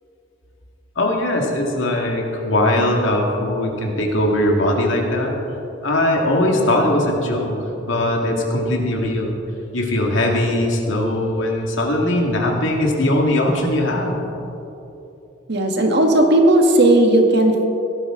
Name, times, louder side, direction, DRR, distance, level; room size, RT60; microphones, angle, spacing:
voice 1, 1.0-5.4 5.8-9.4 9.7-14.2, left 1 dB, 85° left, 0 dB, 2.1 m, -20 dB
voice 2, 15.5-17.6, right 1 dB, 60° right, 3 dB, 1.6 m, -15 dB
17.5 x 12.0 x 3.8 m, 3.0 s
head